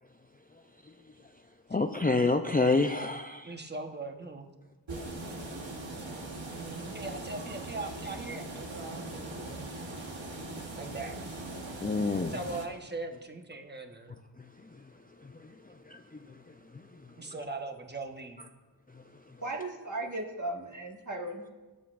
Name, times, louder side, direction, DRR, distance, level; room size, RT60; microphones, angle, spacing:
voice 1, 1.7-3.5 11.8-12.3 15.9-16.0, left 3 dB, 20° left, 0.5 m, -27 dB
voice 2, 3.4-4.5 6.4-9.5 10.8-11.1 12.3-14.2 17.2-18.5, right 3 dB, 25° right, 1.1 m, -40 dB
sound 1, 4.9-12.7, right 2 dB, 90° right, 1.3 m, -40 dB
voice 3, 19.4-21.5, right 2 dB, 40° right, 1.8 m, -36 dB
18.5 x 8.1 x 2.5 m
wide cardioid pair, 45°, 44 cm